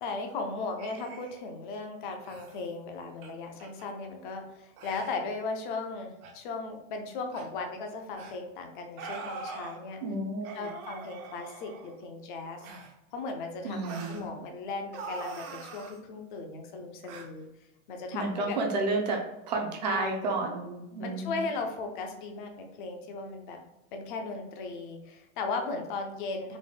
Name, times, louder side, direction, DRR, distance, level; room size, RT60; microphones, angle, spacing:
voice 1, 0.0-10.0 10.5-12.7 13.1-17.5 17.9-18.6 19.9-20.2 21.0-23.6 23.9-26.6, left 3 dB, 40° left, 4 dB, 0.5 m, -37 dB
sound 1, 0.8-1.4 2.2-2.6 3.2-3.3 3.6-3.9 4.8-5.2 6.2-6.3 7.3-7.5 8.1-8.4 9.0-9.8 10.4-12.0 12.6-12.9 13.8-14.3 14.9-16.0 17.0-17.3, right 4 dB, 80° right, 0.9 m, -43 dB
voice 2, 10.0-10.7 13.6-14.2 18.1-21.4, right 2 dB, 35° right, 1 dB, 0.4 m, -31 dB
4.0 x 2.1 x 3.3 m, 0.95 s
supercardioid pair, 175°, 42 cm